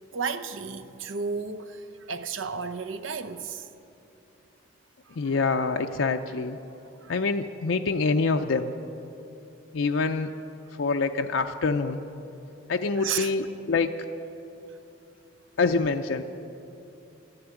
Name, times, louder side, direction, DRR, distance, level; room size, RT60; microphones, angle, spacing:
voice 1, 0.1-3.7 5.1-5.3 7.0-7.1 13.0-13.3, right 5 dB, 80° right, 0.7 m, -33 dB
voice 2, 5.2-6.6 7.1-8.7 9.7-10.3 10.8-12.0 12.7-13.9 15.6-16.2, left 4 dB, 80° left, 0.5 m, -25 dB
13.0 x 10.5 x 8.9 m
head